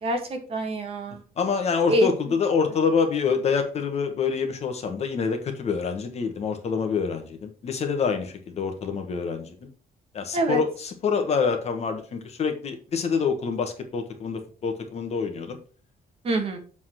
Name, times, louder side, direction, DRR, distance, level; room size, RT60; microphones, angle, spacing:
voice 1, 0.0-1.2 1.9-2.1 10.3-10.6 16.2-16.6, right 1 dB, 35° right, 4 dB, 1.7 m, -25 dB
voice 2, 1.4-9.7 10.1-15.6, left 5 dB, 40° left, 5 dB, 1.4 m, -26 dB
7.8 x 4.1 x 6.1 m, 0.39 s
cardioid pair, 175°, 16 cm